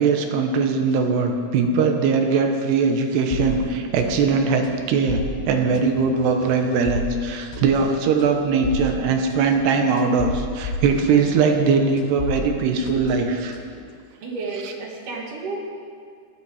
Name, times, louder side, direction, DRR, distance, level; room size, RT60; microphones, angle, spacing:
voice 1, 0.0-13.5 14.6-14.7, right 5 dB, 90° right, 4 dB, 3.3 m, -21 dB
sound 1, 3.3-11.7 12.0-13.9, left 2 dB, 80° left, 3.1 m, -33 dB
voice 2, 14.2-15.6, right 3 dB, 60° right, -1 dB, 2.8 m, -31 dB
16.0 x 12.5 x 4.9 m, 2.2 s
omnidirectional pair, 4.6 m